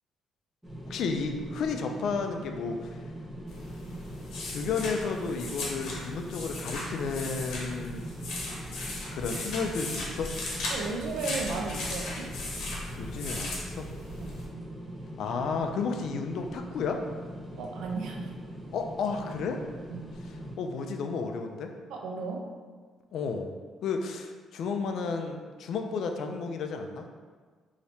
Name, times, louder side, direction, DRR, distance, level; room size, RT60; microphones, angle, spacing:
sound 1, 0.6-20.5, equal, 5° right, 0.6 m, -42 dB
voice 1, 0.9-3.0 4.5-8.1 9.1-10.3 13.0-13.9 15.2-17.0 18.7-19.6 20.6-21.7 23.1-23.5 23.8-27.1, left 5 dB, 65° left, 4 dB, 0.3 m, -32 dB
sound 2, 3.5-14.4, left 2 dB, 80° left, 0.8 m, -37 dB
voice 2, 10.7-12.3 14.2-14.4 17.6-18.3 19.9-20.1 21.9-22.4, right 4 dB, 80° right, 1 dB, 0.5 m, -35 dB
3.2 x 2.7 x 2.7 m, 1.5 s
cardioid pair, 145°, 0 cm